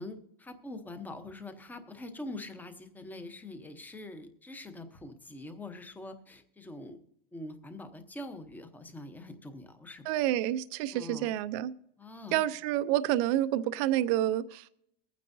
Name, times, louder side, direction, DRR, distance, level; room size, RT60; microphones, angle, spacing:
voice 1, 0.0-7.0 7.3-10.4 10.9-11.3 12.0-12.4, left 2 dB, 5° left, 8 dB, 0.8 m, -44 dB
voice 2, 10.1-11.7 12.3-14.7, right 13 dB, 40° right, 13 dB, 0.6 m, -28 dB
22.5 x 9.4 x 2.7 m, 0.74 s
supercardioid pair, 155°, 30 cm